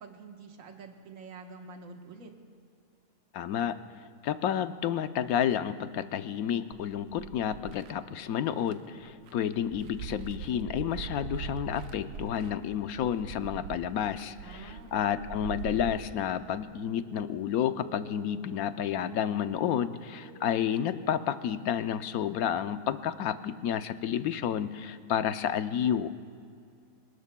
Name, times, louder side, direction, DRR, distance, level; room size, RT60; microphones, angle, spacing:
voice 1, 0.0-2.3 14.4-15.0, right 4 dB, 60° right, 3 dB, 1.6 m, -47 dB
voice 2, 3.3-3.8 4.2-26.1, left 9 dB, 70° left, 11 dB, 1.1 m, -30 dB
sound 1, 5.7-21.5, right 1 dB, 5° left, 3.6 m, -56 dB
sound 2, 6.7-7.9 8.6-8.7 9.1-15.9, right 7 dB, 85° right, 1.2 m, -42 dB
27.5 x 19.5 x 2.2 m, 2.3 s
omnidirectional pair, 1.7 m